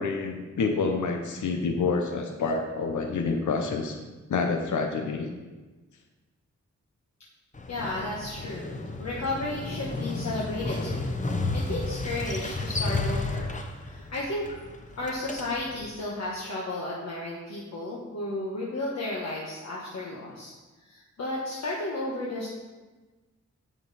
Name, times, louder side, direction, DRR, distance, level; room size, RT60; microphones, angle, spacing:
voice 1, 0.0-4.0 4.3-5.3, left 4 dB, 85° left, 4 dB, 0.8 m, -28 dB
Motorcycle, 7.5-15.9, left 2 dB, 25° left, 0.8 m, -32 dB
voice 2, 7.7-11.1 11.5-13.5 13.8-14.5 15.0-20.5 20.8-22.5, left 2 dB, 60° left, -4 dB, 1.3 m, -33 dB
8.4 x 7.4 x 4.2 m, 1.2 s
wide cardioid pair, 145°, 29 cm